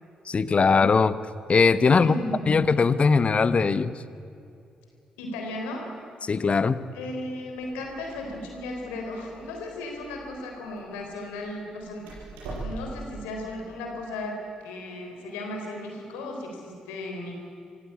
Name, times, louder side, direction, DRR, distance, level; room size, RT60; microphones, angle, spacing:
voice 1, 0.3-1.2 1.5-2.2 2.5-3.9 6.2-6.8, left 4 dB, 40° left, 14 dB, 1.1 m, -20 dB
voice 2, 1.9-2.6 5.2-5.9 6.9-12.1 12.6-17.4, left 1 dB, 80° left, 2 dB, 4.0 m, -35 dB
Door, 7.6-13.2, right 2 dB, 75° right, 6.8 m, -42 dB
25.5 x 15.5 x 8.6 m, 2.5 s
hypercardioid pair, 40°, 3 cm